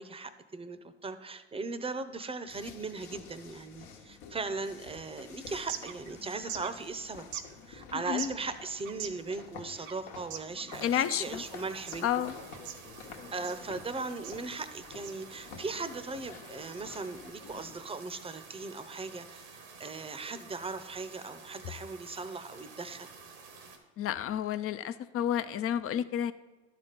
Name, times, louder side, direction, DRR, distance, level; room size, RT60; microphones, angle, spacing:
voice 1, 0.0-7.3 7.7-12.2 13.3-23.1, right 3 dB, 15° right, 12 dB, 0.7 m, -38 dB
sound 1, 2.5-17.8, left 6 dB, 70° left, 1.2 m, -50 dB
sound 2, 5.4-15.7, right 9 dB, 60° right, 0.7 m, -45 dB
sound 3, 10.7-23.8, right 5 dB, 85° right, 1.4 m, -51 dB
voice 2, 10.8-11.4 12.0-12.3 24.0-26.3, left 10 dB, 45° left, 12 dB, 0.6 m, -30 dB
11.5 x 4.3 x 5.2 m, 1.2 s
hypercardioid pair, 75°, 33 cm